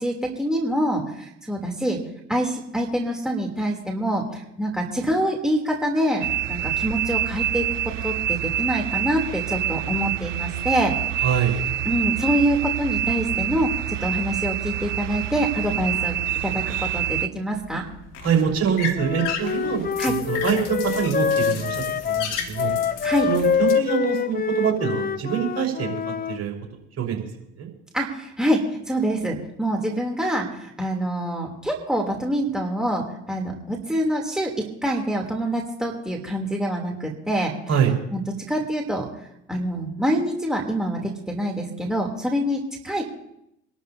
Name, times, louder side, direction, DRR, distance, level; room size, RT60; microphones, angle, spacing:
voice 1, 0.0-2.0 2.3-7.7 8.0-10.9 11.2-11.4 11.8-16.2 16.4-17.8 20.0-20.1 23.0-23.3 27.9-34.5 34.8-37.5 38.1-39.0 39.5-43.1, equal, ahead, -1 dB, 3.4 m, -25 dB
sound 1, 6.2-17.3, right 11 dB, 90° right, 0.6 m, -26 dB
voice 2, 11.2-11.6 18.2-22.7 23.3-26.0 26.3-26.5 27.0-27.2 27.6-27.7 37.7-37.9, right 8 dB, 45° right, 0 dB, 4.9 m, -24 dB
sound 2, 17.5-23.7, left 6 dB, 60° left, 2.8 m, -34 dB
Wind instrument woodwind instrument, 19.0-26.4, left 7 dB, 25° left, 0.7 m, -25 dB
26.5 x 12.5 x 2.9 m, 0.80 s
hypercardioid pair, 60°, 35 cm